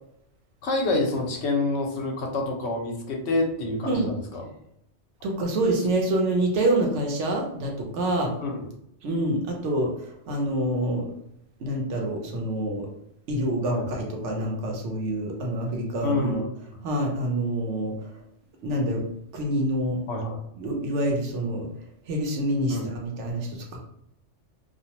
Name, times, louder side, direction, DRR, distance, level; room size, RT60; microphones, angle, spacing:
voice 1, 0.6-4.5 8.4-8.6 13.7-13.9 16.0-16.8 20.1-20.4 22.7-22.9, left 2 dB, 70° left, 1 dB, 0.8 m, -27 dB
voice 2, 5.2-8.3 9.0-11.1 11.6-12.9 13.3-16.4 16.8-18.1 18.6-19.0 19.3-20.0 20.6-21.7 22.1-23.8, right 1 dB, 70° right, 1 dB, 0.9 m, -26 dB
2.5 x 2.1 x 2.8 m, 0.75 s
omnidirectional pair, 1.3 m